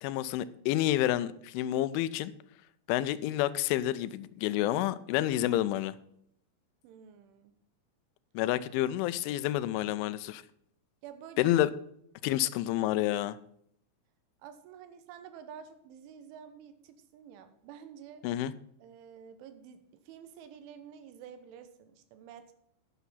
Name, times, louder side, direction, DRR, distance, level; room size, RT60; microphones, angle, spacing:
voice 1, 0.0-2.3 2.9-6.0 8.4-10.4 11.4-11.7 12.2-13.4 18.2-18.5, left 14 dB, 85° left, 3.0 m, -29 dB
voice 2, 6.8-7.6 11.0-11.5 14.4-18.2 18.8-22.5, right 8 dB, 85° right, 3.5 m, -50 dB
10.5 x 6.9 x 5.6 m
omnidirectional pair, 5.4 m